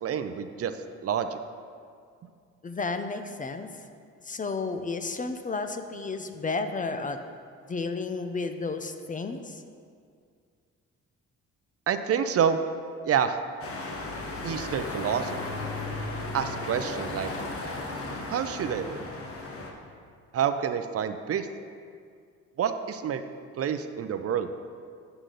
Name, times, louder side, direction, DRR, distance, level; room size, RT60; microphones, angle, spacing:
voice 1, 0.0-0.7 1.0-1.4 11.9-12.6 13.0-13.4 14.4-15.5 16.3-17.3 18.3-19.0 20.3-21.5 22.6-23.2 23.6-24.5, right 8 dB, 50° right, 9 dB, 0.5 m, -28 dB
voice 2, 2.6-3.7 4.2-7.2 7.7-9.6, left 3 dB, 25° left, 8 dB, 0.5 m, -32 dB
sound 1, 13.6-19.7, left 2 dB, 50° left, 1.2 m, -35 dB
8.2 x 7.9 x 3.9 m, 2.2 s
cardioid pair, 90°, 30 cm